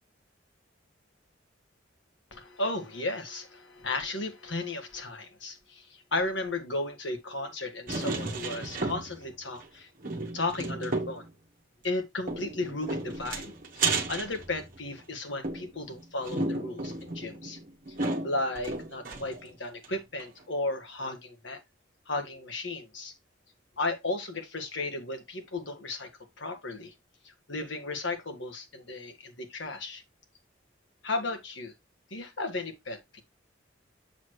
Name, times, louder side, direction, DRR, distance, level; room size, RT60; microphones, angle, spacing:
voice 1, 2.3-9.9 10.3-11.3 11.8-17.6 18.2-21.6 22.1-23.1 23.8-26.1 26.4-26.9 27.2-30.0 31.0-31.7 32.1-33.2, left 2 dB, 65° left, 1.7 m, -34 dB
sound 1, 7.9-9.3 9.6-9.7 10.0-11.3 12.3-15.0 15.4-19.5 19.8-19.9 20.2-20.3, right 3 dB, 45° right, 1.2 m, -33 dB
7.2 x 6.2 x 3.1 m
head